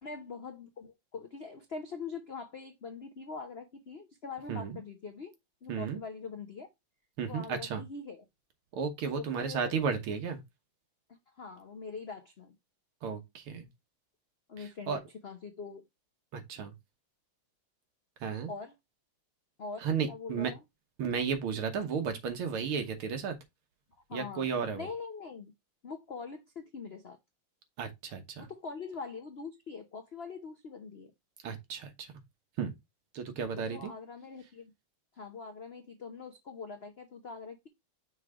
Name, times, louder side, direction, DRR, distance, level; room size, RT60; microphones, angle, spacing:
voice 1, 0.0-5.3 5.6-6.7 7.3-8.2 9.1-9.8 11.1-12.5 14.5-15.8 18.5-18.7 19.6-20.6 24.1-25.5 25.8-27.2 28.4-31.1 33.7-34.7 35.1-37.7, left 4 dB, 70° left, 0.5 m, -43 dB
voice 2, 5.7-6.0 7.2-7.8 8.7-10.4 13.0-13.7 14.6-15.0 16.3-16.7 18.2-18.5 19.8-20.5 21.0-23.4 24.1-24.9 27.8-28.5 31.4-32.1 32.6-32.7 33.1-33.9, right 6 dB, 85° right, 2.1 m, -33 dB
6.1 x 3.2 x 4.9 m
omnidirectional pair, 2.3 m